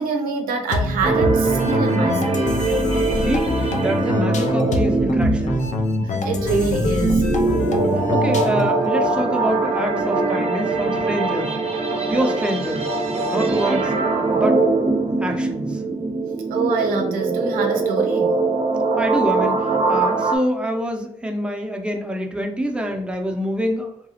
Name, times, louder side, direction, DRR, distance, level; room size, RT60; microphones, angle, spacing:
voice 1, 0.0-2.5 6.0-7.3 7.6-7.7 16.5-18.4, right 4 dB, 90° right, 4 dB, 0.5 m, -25 dB
sound 1, 0.7-8.9, left 2 dB, 60° left, 0.5 m, -24 dB
sound 2, 1.0-20.4, right 3 dB, 45° right, 0.7 m, -22 dB
voice 2, 3.1-5.7 7.9-11.5 12.1-12.9 13.2-13.9 14.3-14.6 15.2-15.8 19.0-23.9, equal, 5° right, 2 dB, 0.7 m, -26 dB
2.9 x 2.3 x 2.8 m, 0.76 s
supercardioid pair, 45°, 14 cm